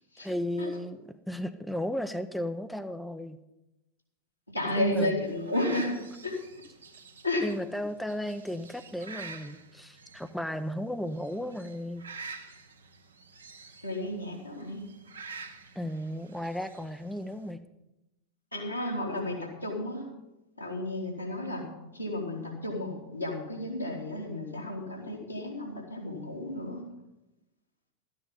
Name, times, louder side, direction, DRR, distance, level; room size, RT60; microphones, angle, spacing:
voice 1, 0.2-3.4 4.8-5.1 7.4-12.0 15.8-17.6, equal, ahead, 10 dB, 0.6 m, -34 dB
voice 2, 4.5-5.9 6.2-6.3 7.2-7.4 13.8-14.8 18.5-20.1 20.6-21.6 21.9-26.8, left 1 dB, 90° left, -3 dB, 3.3 m, -32 dB
sound 1, 5.2-17.5, right 4 dB, 75° right, 1.3 m, -48 dB
13.0 x 9.9 x 5.4 m, 0.94 s
figure-of-eight pair, 90°, 0 cm